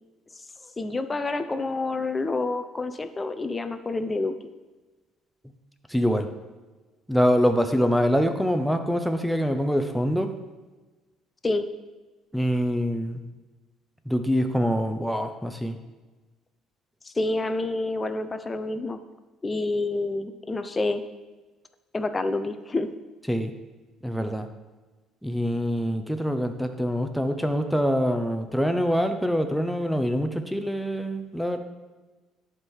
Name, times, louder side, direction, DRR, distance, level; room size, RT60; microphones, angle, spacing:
voice 1, 0.8-4.3 11.4-11.7 17.0-19.0 19.4-21.0 21.9-22.9, left 2 dB, 25° left, 10 dB, 0.7 m, -28 dB
voice 2, 5.9-6.3 7.1-10.3 12.3-13.2 14.1-15.8 23.3-23.5 24.0-24.5 25.2-31.6, equal, ahead, 7 dB, 0.9 m, -25 dB
11.0 x 3.8 x 4.6 m, 1.2 s
hypercardioid pair, 65°, 0 cm